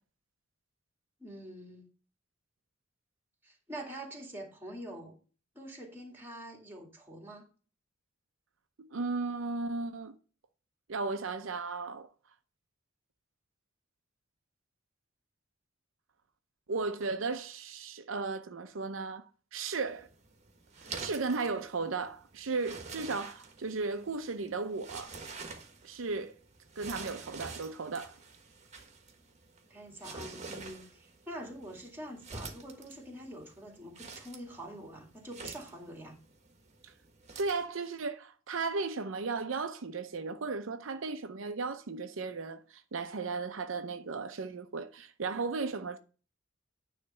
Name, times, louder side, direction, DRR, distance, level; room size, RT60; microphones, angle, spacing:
voice 1, 1.2-1.9 3.4-5.2 5.5-7.5 29.7-36.2, right 1 dB, 10° right, 2.1 m, -45 dB
voice 2, 8.8-10.1 10.9-12.1 16.7-19.2 19.5-20.1 21.0-25.1 25.8-26.4 26.8-28.2 36.8-36.9 37.4-46.0, right 4 dB, 80° right, 0.7 m, -35 dB
sound 1, 19.9-37.7, right 4 dB, 35° right, 1.3 m, -48 dB
9.7 x 3.3 x 6.7 m
head